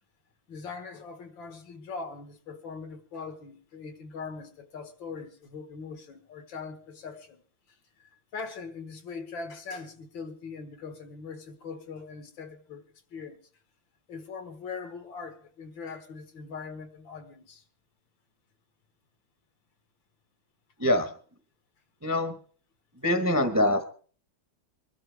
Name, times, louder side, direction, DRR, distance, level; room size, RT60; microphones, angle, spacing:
voice 1, 0.5-7.4 7.7-12.8 13.1-13.4 14.1-17.6, left 4 dB, 75° left, 2.3 m, -41 dB
voice 2, 20.8-21.1 22.0-22.3 23.0-23.8, left 1 dB, 10° right, 0.8 m, -24 dB
23.0 x 12.0 x 3.5 m
omnidirectional pair, 2.2 m